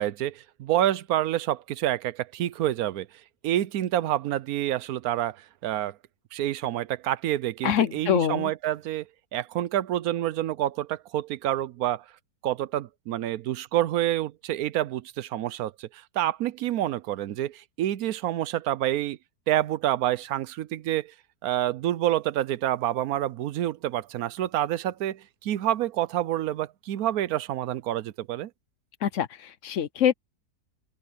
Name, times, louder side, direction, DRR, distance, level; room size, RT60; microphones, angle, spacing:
voice 1, 0.0-3.1 3.4-6.0 6.3-9.0 9.3-12.0 12.4-19.2 19.5-21.1 21.4-28.5, right 13 dB, 70° right, 1.1 m, -28 dB
voice 2, 7.6-8.5 29.0-30.1, left 9 dB, 60° left, 1.0 m, -25 dB
open air
omnidirectional pair, 1.7 m